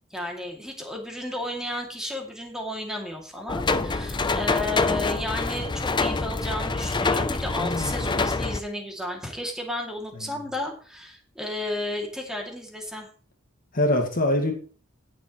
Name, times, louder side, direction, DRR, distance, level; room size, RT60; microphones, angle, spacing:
voice 1, 0.1-13.1, left 1 dB, 5° right, 1 dB, 2.5 m, -33 dB
sound 1, 3.5-8.6, left 3 dB, 20° left, 0.6 m, -26 dB
voice 2, 7.6-8.1 13.7-14.5, left 1 dB, 40° left, 3 dB, 1.9 m, -24 dB
17.5 x 7.2 x 3.1 m, 0.40 s
head